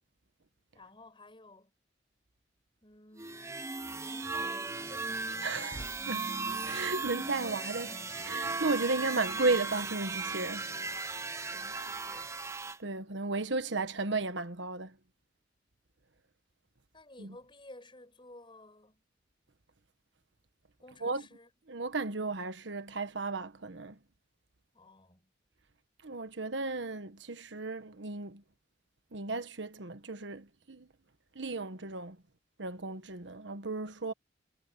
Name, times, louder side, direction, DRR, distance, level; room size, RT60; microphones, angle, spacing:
voice 1, 0.7-1.7 2.8-3.7 4.0-5.9 9.1-9.4 11.3-12.4 16.9-19.0 20.8-21.5 24.7-25.3, left 2 dB, 25° left, 6.9 m, -55 dB
sound 1, 3.2-12.8, right 4 dB, 15° right, 0.6 m, -37 dB
voice 2, 5.4-5.8 6.1-6.2 6.6-10.7 12.8-14.9 17.2-17.3 21.0-21.2 21.7-23.9 26.0-28.4 29.1-30.9 31.3-32.2 32.6-34.1, right 3 dB, 80° right, 1.3 m, -34 dB
head